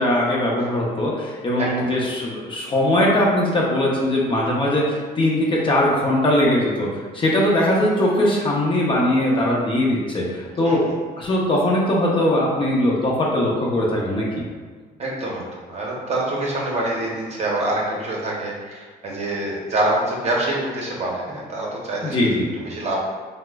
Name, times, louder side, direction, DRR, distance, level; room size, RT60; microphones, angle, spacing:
voice 1, 0.0-6.9 7.1-10.8 11.2-14.4 22.0-22.5, left 1 dB, 30° left, -3 dB, 0.6 m, -20 dB
voice 2, 10.6-10.9 15.0-22.2 22.6-23.0, right 1 dB, 40° right, -3 dB, 0.7 m, -26 dB
2.8 x 2.1 x 3.4 m, 1.5 s
cardioid pair, 110°, 17 cm